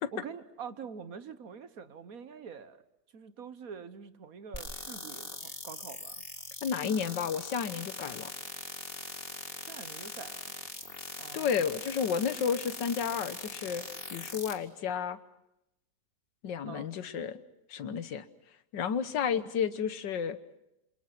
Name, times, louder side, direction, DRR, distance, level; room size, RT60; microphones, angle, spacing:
voice 1, 0.1-2.8 3.1-6.2 9.6-10.5 11.2-11.6 16.6-16.9, right 6 dB, 55° right, 12 dB, 1.5 m, -45 dB
sound 1, 4.5-14.5, left 3 dB, 35° left, 2.5 m, -41 dB
voice 2, 6.6-8.3 11.3-13.9 14.1-15.2 16.4-17.4 17.7-18.3 18.7-20.4, left 7 dB, 90° left, 13 dB, 1.8 m, -31 dB
27.5 x 26.5 x 6.0 m, 0.86 s
omnidirectional pair, 1.9 m